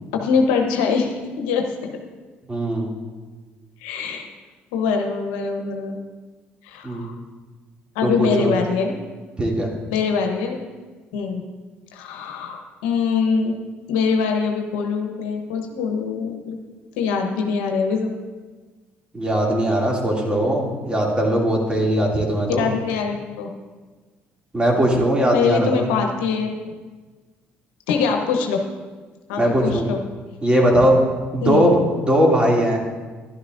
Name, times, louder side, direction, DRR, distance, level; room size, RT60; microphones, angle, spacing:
voice 1, 0.1-2.0 3.8-4.3 4.7-6.0 6.6-7.1 7.9-8.9 9.9-10.6 11.1-11.4 11.9-13.5 13.9-16.6 17.0-18.1 22.5-23.5 25.3-26.7 27.9-28.6 29.3-30.0 31.4-31.7, left 5 dB, 90° left, 3 dB, 1.0 m, -23 dB
voice 2, 2.5-2.9 6.8-7.0 8.0-8.5 9.4-9.7 19.1-22.7 24.5-25.9 29.4-29.9 30.4-31.0 31.3-32.8, right 1 dB, 20° right, -2 dB, 2.6 m, -19 dB
11.5 x 11.5 x 2.6 m, 1.4 s
supercardioid pair, 65°, 5 cm